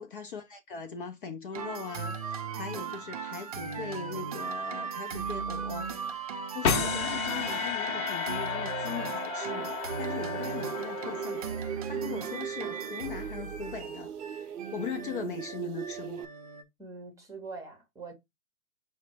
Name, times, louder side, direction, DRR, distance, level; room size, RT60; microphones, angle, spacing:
voice 1, 0.0-16.3, left 5 dB, 35° left, 0.5 m, -40 dB
sound 1, 1.5-16.6, right 5 dB, 30° right, 0.4 m, -37 dB
sound 2, 6.6-11.9, left 7 dB, 70° left, 0.9 m, -33 dB
sound 3, 9.4-16.2, right 8 dB, 90° right, 0.7 m, -39 dB
voice 2, 16.8-18.1, right 4 dB, 5° right, 0.8 m, -43 dB
5.6 x 2.1 x 4.3 m
hypercardioid pair, 130°, 44 cm